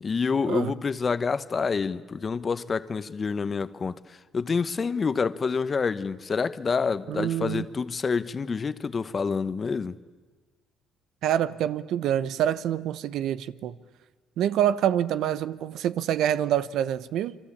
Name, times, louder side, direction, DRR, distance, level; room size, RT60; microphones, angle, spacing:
voice 1, 0.0-10.0, left 5 dB, 30° left, 1.1 m, -28 dB
voice 2, 7.1-7.7 11.2-13.8 14.4-17.4, right 10 dB, 70° right, 1.0 m, -26 dB
29.0 x 23.5 x 8.6 m
cardioid pair, 100°, 0 cm